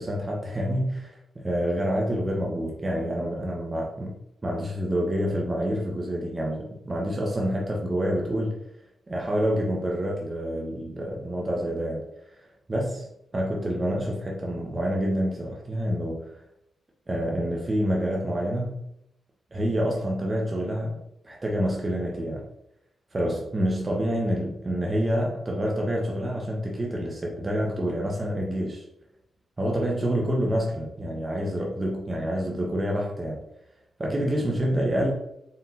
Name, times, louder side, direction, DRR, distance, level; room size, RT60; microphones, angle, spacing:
voice 1, 0.0-8.6 9.1-12.0 12.7-16.4 17.1-18.8 19.5-22.5 23.1-28.8 29.6-33.4 34.0-35.1, equal, 35° right, -2 dB, 1.0 m, -27 dB
4.3 x 3.7 x 2.7 m, 0.79 s
supercardioid pair, 45°, 0 cm